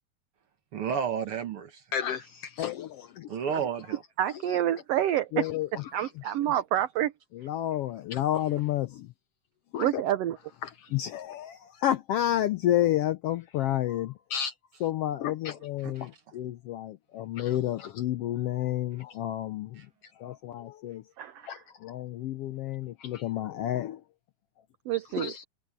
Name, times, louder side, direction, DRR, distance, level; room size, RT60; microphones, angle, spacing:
voice 1, 0.7-1.8 2.2-2.3 3.3-4.0 8.4-8.5 15.8-16.1 19.8-19.9, right 7 dB, 55° right, 1.9 m, -32 dB
voice 2, 1.9-2.2 2.6-3.7 4.5-4.6 5.3-6.6 7.3-9.1 9.7-10.0 10.6-14.5 14.8-19.8 20.2-21.0 21.4-24.0 25.2-25.4, left 12 dB, 85° left, 1.3 m, -31 dB
voice 3, 4.2-5.5 5.9-7.1 9.8-10.4 21.2-21.5 24.9-25.3, right 12 dB, 70° right, 1.6 m, -28 dB
omnidirectional pair, 3.5 m